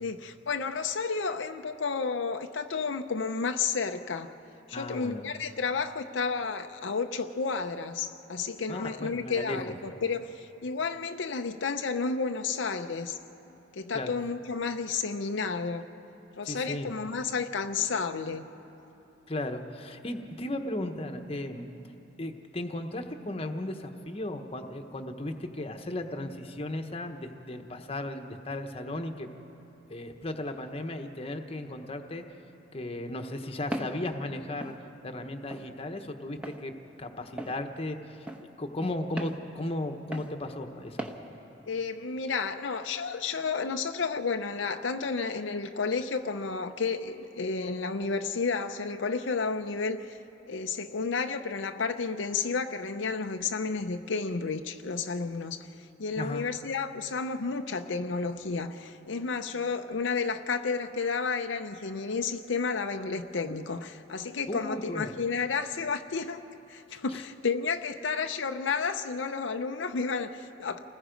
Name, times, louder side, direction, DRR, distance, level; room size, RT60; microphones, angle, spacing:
voice 1, 0.0-4.3 4.7-13.2 13.7-15.8 16.4-18.5 41.7-50.2 50.5-55.7 56.0-66.4 66.7-70.8, left 4 dB, 80° left, 6 dB, 0.7 m, -31 dB
voice 2, 4.7-5.3 8.7-9.6 13.9-14.1 16.4-16.9 19.3-21.7 22.2-29.3 29.9-32.2 32.7-34.7 35.0-36.7 37.0-38.2 38.6-41.1 56.2-56.5 64.5-65.1 66.9-67.2, left 1 dB, 30° left, 5 dB, 1.1 m, -35 dB
Walk footsteps, 33.7-34.0 34.6-34.8 35.5-35.7 36.4-36.6 37.4-37.6 38.3-38.4 39.2-39.4 40.1-40.3 41.0-41.2, right 1 dB, 5° right, 1.1 m, -36 dB
28.5 x 19.5 x 5.2 m, 3.0 s
head